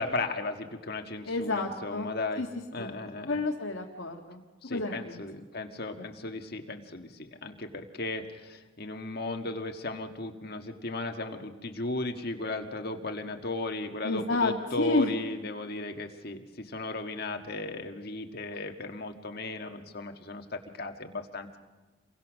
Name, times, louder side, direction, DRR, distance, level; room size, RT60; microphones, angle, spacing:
voice 1, 0.0-2.4 2.7-3.4 4.6-21.6, left 2 dB, 50° left, 4 dB, 1.7 m, -36 dB
voice 2, 1.3-2.1 2.4-2.5 2.8-3.0 3.3-4.4 4.7-5.4 14.0-15.1, left 2 dB, 65° left, 0 dB, 1.8 m, -30 dB
28.5 x 23.0 x 6.3 m, 1.3 s
head